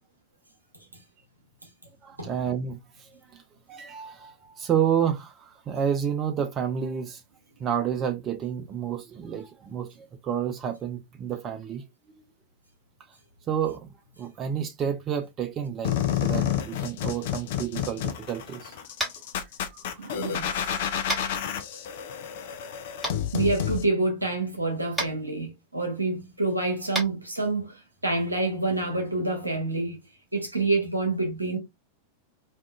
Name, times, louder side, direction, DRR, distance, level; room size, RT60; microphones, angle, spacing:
voice 1, 2.0-3.4 3.7-7.2 7.6-9.9 10.2-11.8 13.5-13.9 14.2-15.9 16.2-18.7 20.0-20.2, right 8 dB, 30° right, 0.4 m, -30 dB
sound 1, 15.8-23.8, left 10 dB, 55° left, 0.4 m, -30 dB
Tap, 19.0-19.2 21.1-21.2 23.0-23.1 24.9-25.1 26.9-27.1, right 1 dB, 5° right, 1.1 m, -29 dB
voice 2, 20.0-20.5 23.3-30.0 30.3-31.6, right 2 dB, 85° right, 0.7 m, -27 dB
2.5 x 2.3 x 2.2 m
figure-of-eight pair, 90°, 0 cm